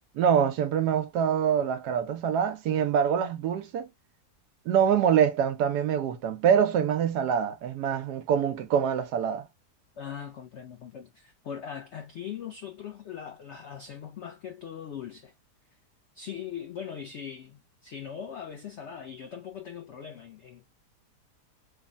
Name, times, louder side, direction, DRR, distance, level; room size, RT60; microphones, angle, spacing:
voice 1, 0.1-3.9 4.7-9.4, right 8 dB, 75° right, 1.2 m, -25 dB
voice 2, 10.0-15.3 16.1-20.7, left 8 dB, 85° left, 0.6 m, -40 dB
3.4 x 2.0 x 2.5 m
omnidirectional pair, 1.8 m